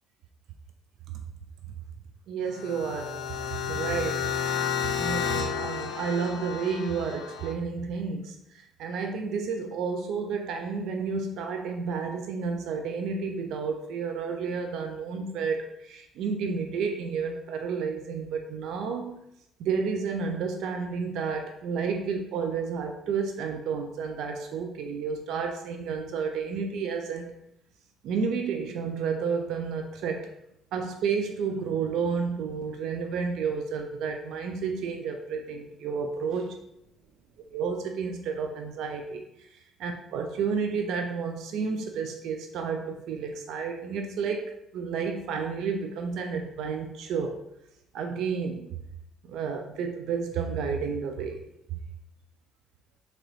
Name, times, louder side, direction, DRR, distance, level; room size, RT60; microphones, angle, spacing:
voice 1, 2.3-3.2 3.7-4.3 5.0-8.4 8.8-19.2 19.6-27.3 28.0-30.3 30.7-36.6 37.5-39.2 39.5-47.4 47.9-48.8 49.3-51.4, right 5 dB, 75° right, 4 dB, 0.4 m, -31 dB
sound 1, 2.5-7.5, left 7 dB, 80° left, 0.4 m, -31 dB
3.0 x 2.9 x 3.8 m, 0.81 s
supercardioid pair, 70°, 0 cm